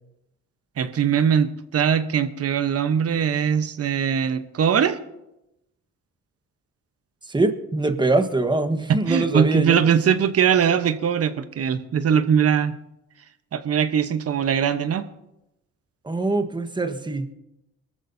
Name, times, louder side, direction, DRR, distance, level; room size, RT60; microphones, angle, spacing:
voice 1, 0.8-5.0 9.1-12.8 13.5-15.1, right 8 dB, 50° right, 11 dB, 1.0 m, -21 dB
voice 2, 7.3-9.8 16.0-17.3, right 2 dB, 15° right, 8 dB, 1.3 m, -23 dB
22.5 x 14.0 x 2.7 m, 0.89 s
cardioid pair, 90°, 30 cm